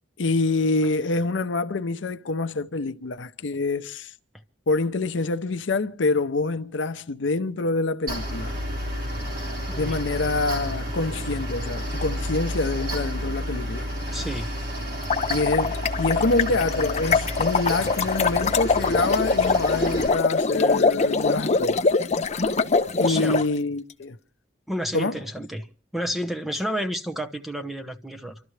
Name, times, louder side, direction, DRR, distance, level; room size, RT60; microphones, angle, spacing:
voice 1, 0.2-4.1 4.7-8.5 9.8-13.9 15.3-21.8 23.0-24.2 24.9-25.2, left 3 dB, 80° left, 0.7 m, -26 dB
Mechanical fan, 8.1-20.1, equal, 55° right, 4.3 m, -31 dB
voice 2, 9.7-10.0 14.1-14.5 23.0-23.4 24.7-25.7 25.9-28.4, equal, ahead, 0.9 m, -30 dB
sound 1, 14.9-23.4, left 4 dB, 35° left, 0.7 m, -23 dB
28.5 x 12.5 x 3.2 m
head